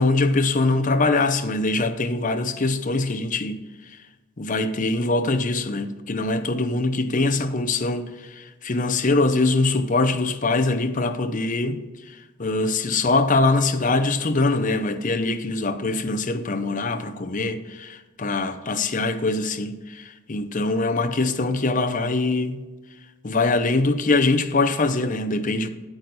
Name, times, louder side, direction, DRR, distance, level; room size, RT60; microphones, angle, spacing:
voice 1, 0.0-3.6 4.4-11.8 12.1-22.6 23.2-25.7, left 3 dB, 35° left, 0.7 m, -23 dB
9.4 x 8.9 x 4.1 m
head